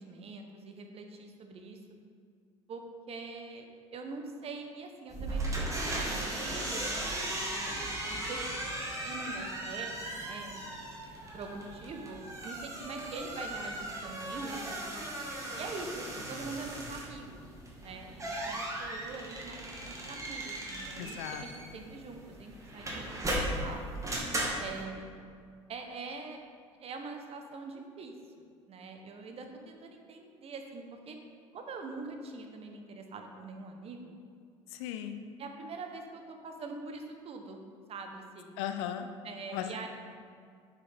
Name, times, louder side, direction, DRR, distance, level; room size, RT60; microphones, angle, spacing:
voice 1, 0.0-1.8 2.7-3.7 3.9-7.0 7.4-8.4 9.0-10.6 11.3-15.2 15.5-17.4 17.8-23.8 24.6-25.2 25.7-26.4 26.8-28.1 28.7-31.2 31.5-34.1 35.4-37.6 37.9-38.6 39.2-39.9, right 3 dB, 40° right, 4 dB, 1.1 m, -44 dB
sound 1, 5.1-24.8, right 1 dB, 20° right, 2.0 m, -37 dB
voice 2, 21.0-21.7 34.7-35.2 38.6-39.1 39.5-39.9, left 9 dB, 65° left, 7 dB, 0.6 m, -37 dB
8.8 x 6.9 x 3.6 m, 2.2 s
figure-of-eight pair, 65°, 16 cm